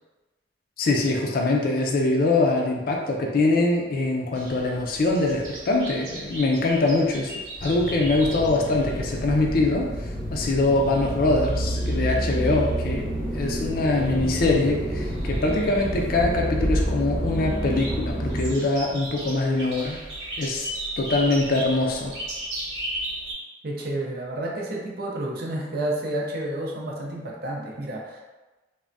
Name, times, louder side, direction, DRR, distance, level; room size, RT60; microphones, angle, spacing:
voice 1, 0.8-7.3 7.6-9.9 10.3-13.1 13.3-20.0 20.4-20.7 21.0-22.1, left 2 dB, 50° left, 0 dB, 0.4 m, -23 dB
sound 1, 4.3-23.3, right 1 dB, 75° right, 1.0 m, -38 dB
sound 2, 7.6-18.5, equal, 5° left, 0.9 m, -28 dB
voice 2, 23.6-28.2, right 1 dB, 55° right, -2 dB, 0.6 m, -30 dB
3.3 x 2.1 x 2.6 m, 1.2 s
head